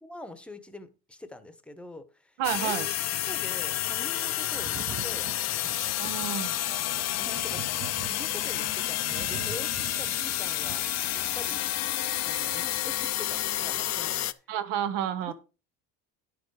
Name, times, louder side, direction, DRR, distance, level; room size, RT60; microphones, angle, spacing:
voice 1, 0.0-2.9 3.3-5.3 6.7-10.8 11.1-11.7 12.2-14.1, left 1 dB, 5° left, 11 dB, 0.9 m, -44 dB
sound 1, 2.4-14.3, left 13 dB, 40° left, 0.5 m, -30 dB
voice 2, 2.4-2.9 6.0-6.5 14.5-15.3, right 10 dB, 80° right, 12 dB, 1.4 m, -30 dB
Thunder, 4.5-11.9 13.0-13.1, right 8 dB, 30° right, 0.7 m, -44 dB
10.5 x 6.8 x 4.8 m, 0.32 s
cardioid pair, 150°, 41 cm